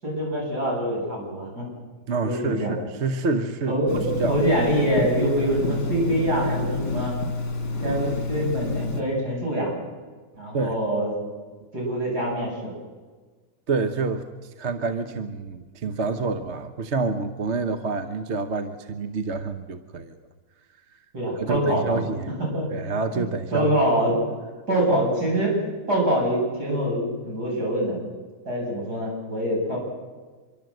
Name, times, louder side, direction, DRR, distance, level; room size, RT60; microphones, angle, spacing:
voice 1, 0.0-1.7 2.2-2.8 3.7-4.0 4.3-7.1 7.8-9.7 10.4-11.1 11.7-12.7 21.1-22.0 22.5-22.7 23.1-24.2 24.7-25.6 25.9-28.0 28.4-29.8, right 1 dB, 60° right, -2 dB, 8.4 m, -25 dB
voice 2, 2.1-3.8 4.2-4.4 10.5-10.8 13.7-20.2 21.4-22.3 22.7-23.7, right 3 dB, 45° right, 8 dB, 1.2 m, -27 dB
Telephone, 3.9-9.0, left 2 dB, 65° left, 3.2 m, -28 dB
26.0 x 23.0 x 7.9 m, 1.4 s
omnidirectional pair, 2.0 m